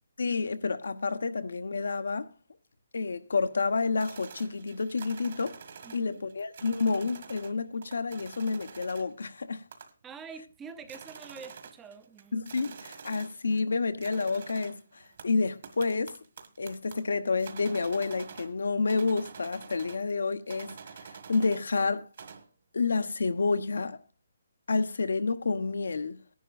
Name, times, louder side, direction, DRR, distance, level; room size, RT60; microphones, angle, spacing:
voice 1, 0.2-2.3 2.9-5.6 5.9-9.6 12.3-16.1 16.6-20.7 21.0-22.1 22.7-24.0 24.7-26.2, left 4 dB, 80° left, 1.1 m, -29 dB
sound 1, 4.0-7.6 7.8-9.2 9.7-10.1 10.5-10.6 10.8-13.7 14.0-18.6 18.9-20.1 20.5-21.7 22.0-22.5, right 6 dB, 45° right, 1.7 m, -47 dB
voice 2, 5.8-6.2 10.0-12.4, right 5 dB, 10° right, 0.7 m, -46 dB
18.5 x 11.0 x 2.5 m
hypercardioid pair, 170°, 0 cm